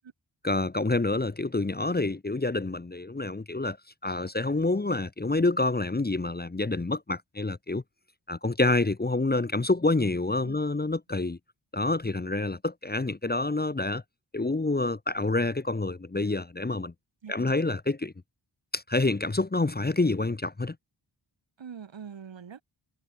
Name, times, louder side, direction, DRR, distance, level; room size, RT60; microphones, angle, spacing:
voice 1, 0.4-3.8 4.0-7.8 8.3-11.4 11.7-14.0 14.3-16.9 17.3-18.1 18.7-20.8, left 2 dB, 20° left, 0.9 m, -27 dB
voice 2, 17.2-17.7 21.6-22.6, right 7 dB, 65° right, 1.4 m, -44 dB
cardioid pair, 55°, 49 cm